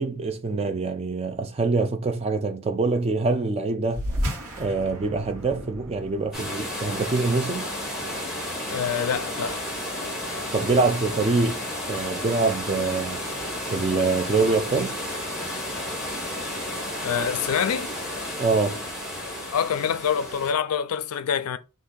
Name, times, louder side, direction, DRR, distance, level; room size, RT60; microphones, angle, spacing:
voice 1, 0.0-4.0 4.6-7.7 10.5-13.2 13.7-15.0 18.4-18.8, right 3 dB, 30° right, 0.4 m, -25 dB
sound 1, 3.9-8.8, equal, 85° right, 1.1 m, -34 dB
sound 2, 6.3-20.5, left 1 dB, ahead, 0.9 m, -32 dB
voice 2, 8.7-9.6 17.0-17.9 19.5-21.6, left 7 dB, 85° left, 0.4 m, -26 dB
2.6 x 2.5 x 3.7 m
head